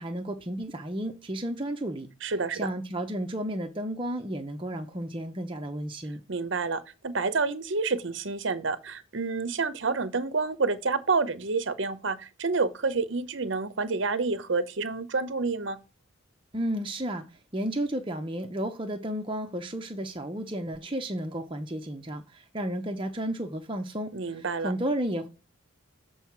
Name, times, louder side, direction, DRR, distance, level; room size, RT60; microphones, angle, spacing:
voice 1, 0.0-2.1 2.5-6.2 16.5-17.2 17.5-25.3, right 1 dB, 25° right, 0.8 m, -32 dB
voice 2, 2.2-2.7 6.3-15.8 24.1-24.7, right 4 dB, 60° right, 0.7 m, -28 dB
7.7 x 4.6 x 4.4 m
head